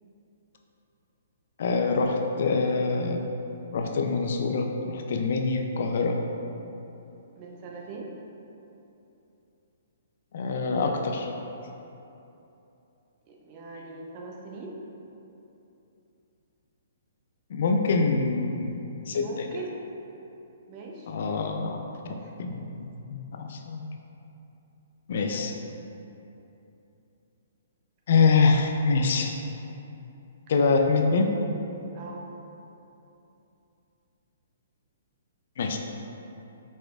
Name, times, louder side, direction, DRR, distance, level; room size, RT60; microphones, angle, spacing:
voice 1, 1.6-3.2 3.7-6.2 10.3-11.3 17.5-19.5 21.1-23.8 25.1-25.5 28.1-29.3 30.5-31.3 35.6-35.8, left 4 dB, 60° left, 4 dB, 0.4 m, -25 dB
voice 2, 7.4-8.1 13.3-14.8 19.2-19.8 20.7-21.2 22.2-22.3 25.2-25.4 31.9-32.3, right 3 dB, 35° right, -1 dB, 0.6 m, -41 dB
4.7 x 4.1 x 2.4 m, 2.9 s
hypercardioid pair, 135°, 0 cm